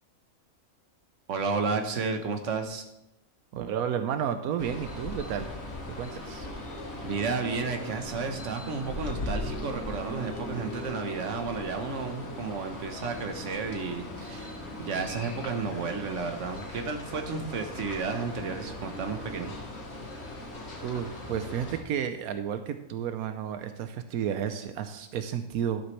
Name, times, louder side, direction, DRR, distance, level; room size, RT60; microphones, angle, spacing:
voice 1, 1.3-2.8 7.0-19.5, right 4 dB, 60° right, 5 dB, 1.5 m, -32 dB
voice 2, 3.5-5.5 6.0-6.5 20.8-25.8, right 8 dB, 85° right, 8 dB, 1.1 m, -32 dB
sound 1, 4.6-21.8, left 1 dB, 50° left, 1.8 m, -39 dB
12.0 x 11.5 x 3.2 m, 0.90 s
omnidirectional pair, 1.5 m